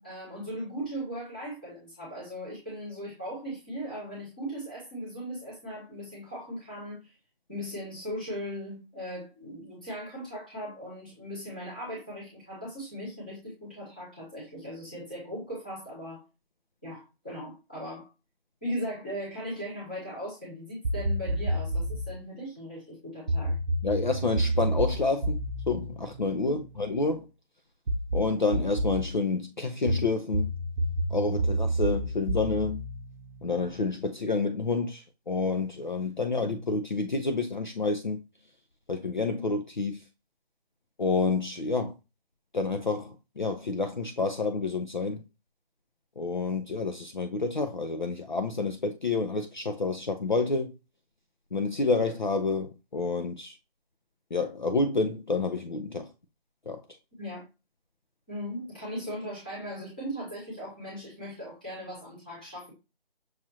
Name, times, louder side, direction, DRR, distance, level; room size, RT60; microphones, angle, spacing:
voice 1, 0.0-7.1 7.5-16.2 16.8-18.1 18.6-23.6 26.4-26.6 57.2-57.4 58.3-62.7, equal, 10° left, 0.9 m, -38 dB
sound 1, 20.8-22.1 23.3-27.0 27.9-29.1 29.9-33.8, right 1 dB, 60° right, 0.7 m, -30 dB
voice 2, 23.8-27.3 28.1-30.5 31.1-32.8 33.4-38.2 38.9-40.0 41.0-41.9 42.5-45.2 46.2-50.7 51.5-53.5 54.3-56.1 56.7-56.8, left 3 dB, 50° left, 0.4 m, -29 dB
6.1 x 2.5 x 2.8 m
figure-of-eight pair, 175°, 31 cm